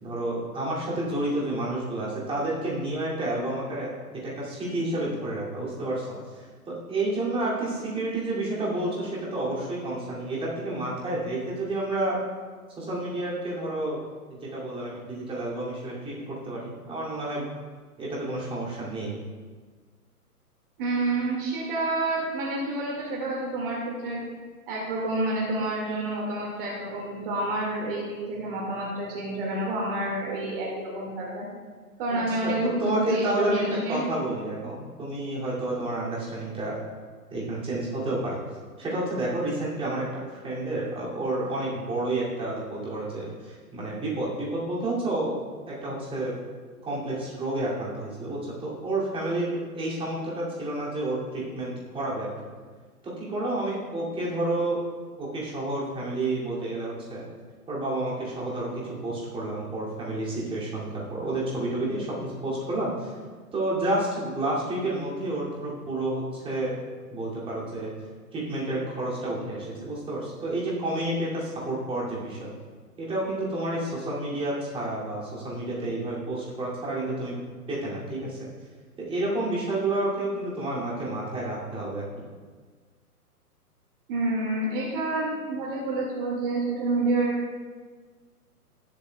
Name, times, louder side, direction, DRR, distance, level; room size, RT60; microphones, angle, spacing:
voice 1, 0.0-3.9 4.2-12.2 12.8-14.0 14.3-17.5 18.0-19.1 32.1-32.4 32.6-33.6 33.9-36.8 37.3-38.4 38.8-40.1 40.3-45.3 45.7-46.3 46.8-52.3 53.0-54.8 55.2-57.2 57.7-63.1 63.5-66.7 67.1-67.9 68.3-72.5 73.0-77.3 77.7-78.4 79.0-82.0, right 2 dB, 10° right, -6 dB, 2.6 m, -30 dB
voice 2, 20.8-24.2 24.7-31.4 32.0-34.0 84.1-87.4, right 2 dB, 35° right, -3 dB, 2.0 m, -28 dB
19.0 x 7.3 x 2.3 m, 1.5 s
figure-of-eight pair, 125°, 47 cm